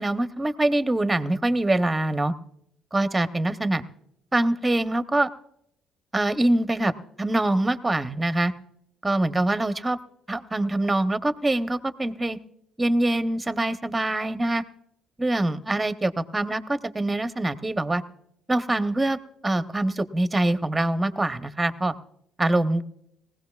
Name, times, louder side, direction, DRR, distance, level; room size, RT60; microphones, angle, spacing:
voice 1, 0.0-2.3 2.9-3.8 4.3-5.3 6.1-6.9 7.2-8.5 9.0-10.0 10.3-12.4 12.8-14.6 15.2-18.0 18.5-19.2 19.4-21.9 22.4-22.8, right 1 dB, 15° right, 11 dB, 0.8 m, -24 dB
19.5 x 16.0 x 2.4 m, 0.74 s
hypercardioid pair, 60°, 0 cm